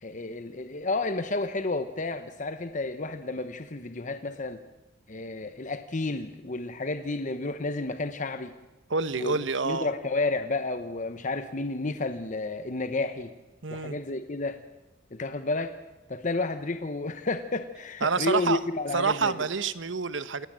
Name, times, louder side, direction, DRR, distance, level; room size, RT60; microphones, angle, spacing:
voice 1, 0.0-4.6 5.1-8.5 9.2-13.3 13.7-14.6 15.1-15.7 16.1-19.5, left 3 dB, 40° left, 9 dB, 1.0 m, -31 dB
voice 2, 8.9-9.9 13.6-14.0 18.0-18.6 18.9-20.5, right 4 dB, 75° right, 14 dB, 1.1 m, -27 dB
27.5 x 19.0 x 7.6 m, 1.1 s
head